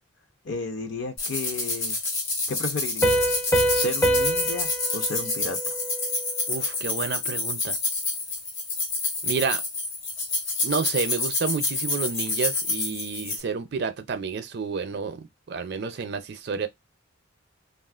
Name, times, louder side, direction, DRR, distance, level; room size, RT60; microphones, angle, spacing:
voice 1, 0.4-2.0 2.5-3.4 3.7-5.7, left 3 dB, 55° left, 0.6 m, -33 dB
sound 1, 1.2-13.4, left 3 dB, 75° left, 1.2 m, -28 dB
Piano, 3.0-6.4, right 1 dB, 15° left, 0.4 m, -26 dB
voice 2, 6.5-7.8 9.2-9.6 10.6-16.7, right 5 dB, 50° right, 0.4 m, -30 dB
3.3 x 2.4 x 2.4 m
head